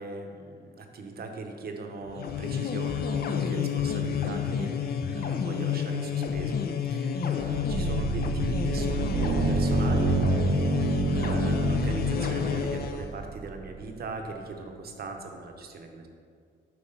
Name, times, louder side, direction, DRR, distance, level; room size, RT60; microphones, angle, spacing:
voice 1, 0.0-10.1 11.1-16.1, right 3 dB, 50° right, 4 dB, 0.9 m, -40 dB
sound 1, 2.1-13.1, left 7 dB, 50° left, 0.5 m, -29 dB
sound 2, 7.7-14.2, right 5 dB, 35° right, 0.4 m, -28 dB
7.8 x 2.9 x 5.5 m, 2.2 s
cardioid pair, 90°, 20 cm